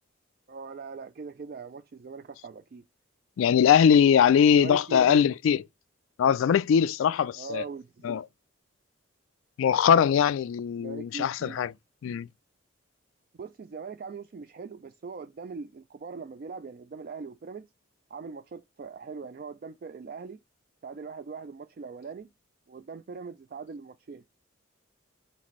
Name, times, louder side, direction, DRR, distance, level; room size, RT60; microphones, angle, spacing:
voice 1, 0.5-2.8 4.5-5.2 7.4-8.2 10.8-11.7 13.4-17.6 18.1-20.4 20.8-22.3 22.7-24.2, right 5 dB, 45° right, 0.3 m, -41 dB
voice 2, 3.4-5.6 6.2-7.6 8.0-8.2 9.6-11.7 12.0-12.3, left 8 dB, 85° left, 0.3 m, -21 dB
4.2 x 4.1 x 3.0 m
head